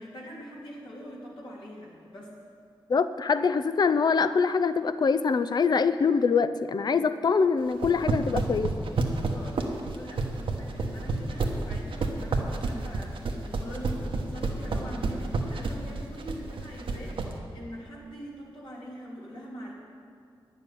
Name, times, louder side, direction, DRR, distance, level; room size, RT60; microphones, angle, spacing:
voice 1, 0.0-2.3 9.2-19.7, equal, 65° left, -5 dB, 3.0 m, -43 dB
voice 2, 2.9-8.7, left 5 dB, 50° left, 12 dB, 0.5 m, -24 dB
sound 1, 7.7-17.3, right 3 dB, 80° right, 1.2 m, -29 dB
10.5 x 7.2 x 9.5 m, 2.3 s
wide cardioid pair, 95°, 9 cm